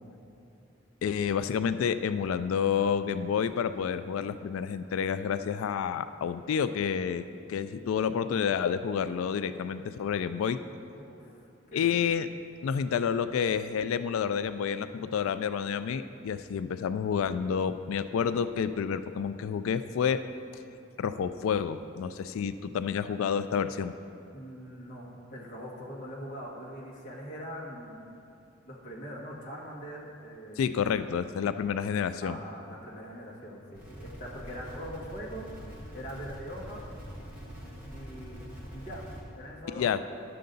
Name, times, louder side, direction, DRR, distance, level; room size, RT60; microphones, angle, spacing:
voice 1, 1.0-10.6 11.7-12.3 12.6-20.2 21.0-23.9 30.6-32.4 39.8-40.0, left 7 dB, 80° left, 12 dB, 0.3 m, -29 dB
voice 2, 10.9-12.0 24.3-28.0 28.6-30.7 32.2-36.8 37.9-38.4 38.7-39.9, equal, 40° left, -4 dB, 1.4 m, -42 dB
sound 1, 33.7-39.2, equal, 10° right, 1.4 m, -44 dB
10.5 x 6.7 x 3.9 m, 2.6 s
head